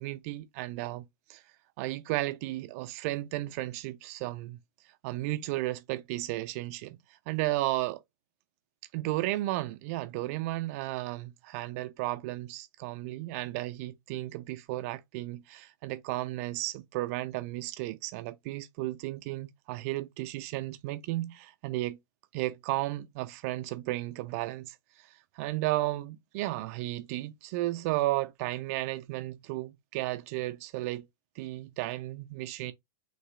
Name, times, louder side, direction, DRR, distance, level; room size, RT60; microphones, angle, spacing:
voice 1, 0.0-1.4 1.8-4.6 5.0-7.0 7.3-8.0 8.9-22.0 22.3-25.1 25.4-31.1 31.4-32.7, right 17 dB, 45° right, 0.5 m, -34 dB
5.4 x 3.0 x 2.3 m
figure-of-eight pair, 95°, 11 cm